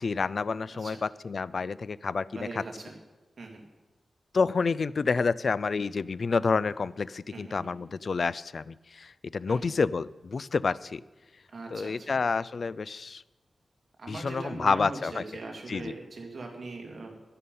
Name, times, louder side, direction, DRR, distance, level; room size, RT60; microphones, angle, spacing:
voice 1, 0.0-2.6 4.3-11.0 11.7-13.2 14.1-15.2 15.7-15.9, left 4 dB, 50° left, 19 dB, 0.3 m, -29 dB
voice 2, 2.4-3.0 3.4-3.6 7.3-7.7 9.5-9.6 11.5-12.2 14.0-17.2, right 3 dB, 50° right, 1 dB, 2.4 m, -40 dB
11.0 x 11.0 x 5.4 m, 1.2 s
wide cardioid pair, 165°, 0 cm